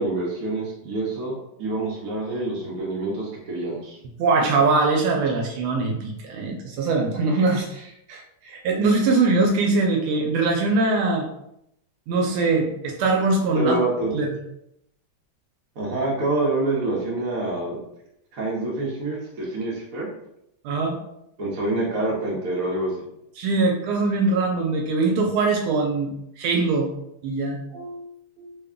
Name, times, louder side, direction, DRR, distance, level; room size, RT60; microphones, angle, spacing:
voice 1, 0.0-4.0 13.5-14.1 15.8-17.8 18.3-20.1 21.4-22.9, right 2 dB, 55° right, -4 dB, 1.0 m, -26 dB
voice 2, 4.2-11.3 12.1-13.8 14.1-14.3 20.6-21.0 23.4-26.9 27.2-28.1 28.4-28.6, right 3 dB, 85° right, 1 dB, 1.4 m, -22 dB
3.4 x 2.2 x 3.6 m, 0.80 s
omnidirectional pair, 2.3 m